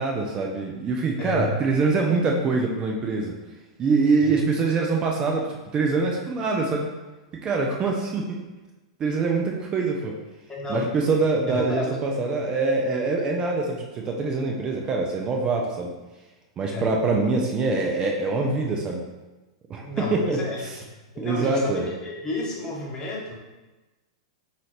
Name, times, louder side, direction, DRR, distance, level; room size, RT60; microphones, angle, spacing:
voice 1, 0.0-3.3 3.8-6.9 7.4-8.4 9.0-10.1 10.7-15.9 16.6-19.0 19.7-20.8 21.2-21.9, right 3 dB, 30° right, 0 dB, 0.5 m, -24 dB
voice 2, 1.2-1.6 4.2-4.4 10.5-10.9 11.5-11.9 16.7-16.9 19.8-20.6 21.1-23.3, left 2 dB, 25° left, -3 dB, 1.2 m, -31 dB
5.5 x 2.8 x 3.2 m, 1.1 s
hypercardioid pair, 110°, 3 cm